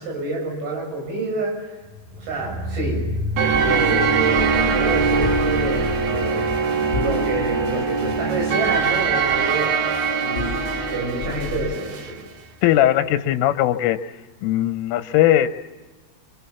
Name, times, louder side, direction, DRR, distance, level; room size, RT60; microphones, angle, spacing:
voice 1, 0.0-1.6 2.2-3.0 3.4-9.7 10.2-10.5 10.8-12.2, right 3 dB, 80° right, 0 dB, 9.7 m, -28 dB
sound 1, 1.8-12.8 13.1-13.2, left 1 dB, 40° right, 2.2 m, -33 dB
sound 2, 3.4-12.2, right 6 dB, 60° right, 3.4 m, -22 dB
sound 3, 3.5-11.8, left 5 dB, 30° left, 1.9 m, -32 dB
voice 2, 12.6-14.0 14.4-15.5, left 13 dB, 85° left, 9 dB, 3.5 m, -19 dB
25.5 x 25.0 x 7.2 m, 1.2 s
omnidirectional pair, 5.8 m